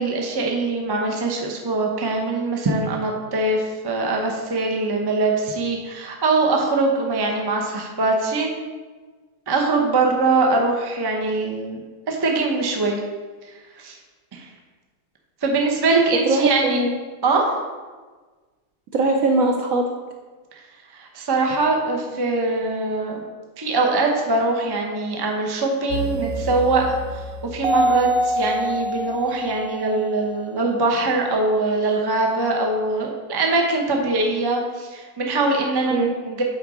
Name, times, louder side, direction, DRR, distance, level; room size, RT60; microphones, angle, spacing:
voice 1, 0.0-8.5 9.5-11.8 12.1-13.0 13.8-14.0 14.3-14.5 15.4-16.8 17.2-17.6 20.5-20.6 20.9-23.2 23.6-27.2 27.5-36.4, right 3 dB, 30° right, 0 dB, 0.4 m, -22 dB
voice 2, 16.3-17.0 18.9-19.9 35.9-36.2, right 2 dB, 70° right, 2 dB, 0.8 m, -21 dB
sound 1, 25.9-30.6, equal, 90° right, 0.5 m, -26 dB
7.9 x 4.0 x 4.9 m, 1.4 s
omnidirectional pair, 1.9 m